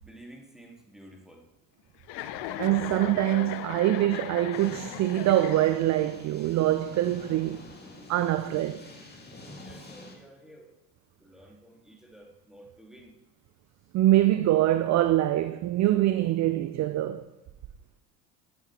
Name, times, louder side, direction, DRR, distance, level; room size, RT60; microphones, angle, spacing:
voice 1, 0.0-1.4 2.5-2.6 9.4-10.7 11.2-13.2, right 1 dB, ahead, 2.6 m, -51 dB
Chuckle chortle, 2.0-6.1, left 12 dB, 55° left, 0.9 m, -38 dB
voice 2, 2.6-7.6 8.1-8.8 13.9-17.2, right 14 dB, 35° right, 0.6 m, -24 dB
sound 1, 4.5-10.2, left 2 dB, 20° left, 2.7 m, -47 dB
15.5 x 9.0 x 3.3 m
figure-of-eight pair, 65°, 49 cm